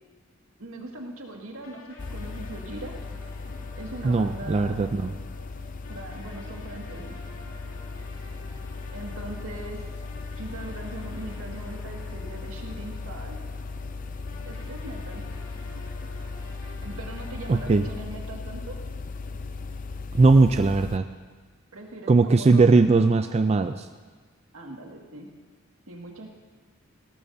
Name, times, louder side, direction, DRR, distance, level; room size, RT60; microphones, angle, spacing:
voice 1, 0.6-2.9 3.8-4.8 5.9-7.0 8.9-9.9 10.4-13.4 14.4-15.2 16.8-18.8 21.7-22.7 24.5-25.3 25.9-26.3, right 2 dB, 80° right, 0 dB, 2.0 m, -40 dB
sound 1, 1.6-18.0, left 2 dB, 70° left, 3.0 m, -49 dB
sound 2, 2.0-21.0, left 3 dB, 40° left, 0.5 m, -37 dB
voice 2, 4.0-5.1 17.5-17.8 20.1-21.1 22.1-23.9, right 3 dB, 30° right, 8 dB, 0.3 m, -19 dB
19.0 x 17.5 x 2.7 m, 1.4 s
head